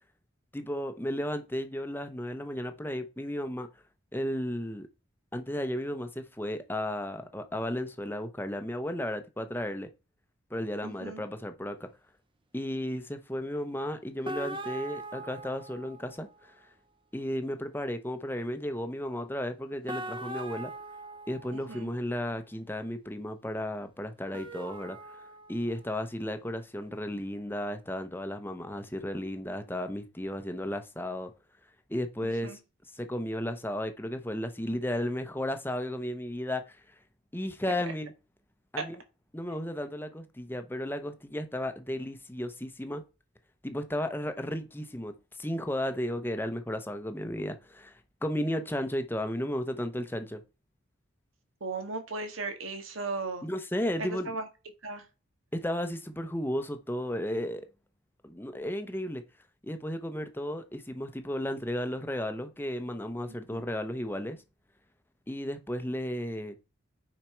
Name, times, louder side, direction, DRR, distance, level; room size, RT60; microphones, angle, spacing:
voice 1, 0.5-3.7 4.1-4.9 5.3-9.9 10.5-11.9 12.5-16.6 17.1-20.7 21.3-25.2 25.5-31.3 31.9-32.6 32.9-36.8 37.3-38.1 38.7-39.0 39.3-43.0 43.6-50.4 53.4-54.3 55.5-57.7 58.2-59.2 59.6-64.4 65.3-66.5, left 1 dB, 10° left, 0.8 m, -34 dB
voice 2, 10.8-11.2 21.5-21.9 32.2-32.6 38.8-38.9 51.6-53.5 54.0-54.5 54.8-55.0 63.5-63.6, right 3 dB, 80° right, 1.8 m, -36 dB
sound 1, 14.2-16.2 19.9-22.0 24.3-25.9, right 2 dB, 25° right, 0.8 m, -41 dB
9.1 x 5.0 x 4.5 m
head